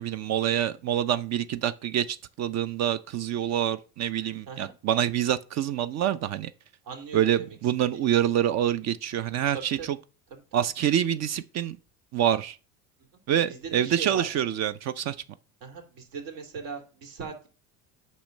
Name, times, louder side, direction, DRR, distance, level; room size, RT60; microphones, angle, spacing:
voice 1, 0.0-6.5 7.1-10.0 10.5-11.8 12.1-12.6 13.3-15.2, right 10 dB, 50° right, 0.6 m, -26 dB
voice 2, 6.8-7.6 9.5-10.0 10.3-10.6 13.1-13.2 13.5-14.3 15.6-17.5, right 5 dB, 70° right, 2.6 m, -39 dB
8.6 x 3.1 x 6.5 m
supercardioid pair, 105°, 35 cm